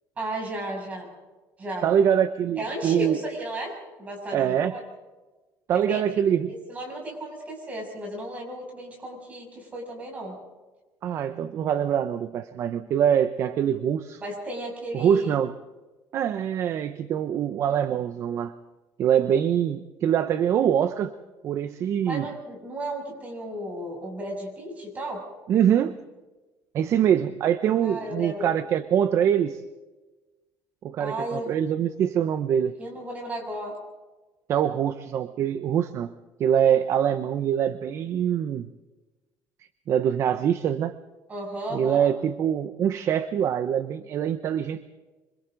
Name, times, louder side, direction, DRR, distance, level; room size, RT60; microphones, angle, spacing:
voice 1, 0.2-1.1 1.6-1.9 2.6-4.8 5.7-6.0 6.5-10.4 14.2-15.4 22.0-25.3 27.8-28.5 31.0-31.5 32.8-33.8 41.3-42.1, right 1 dB, 20° right, 0 dB, 7.0 m, -34 dB
voice 2, 1.8-3.2 4.3-4.7 5.7-6.5 11.0-14.2 14.9-15.5 16.1-18.5 19.0-21.1 21.4-22.2 25.5-26.0 26.7-29.6 30.8-32.8 34.5-36.1 36.4-38.7 39.9-41.0 41.7-44.9, right 9 dB, 40° right, 11 dB, 0.7 m, -24 dB
27.0 x 25.0 x 3.9 m, 1.2 s
cardioid pair, 170°, 7 cm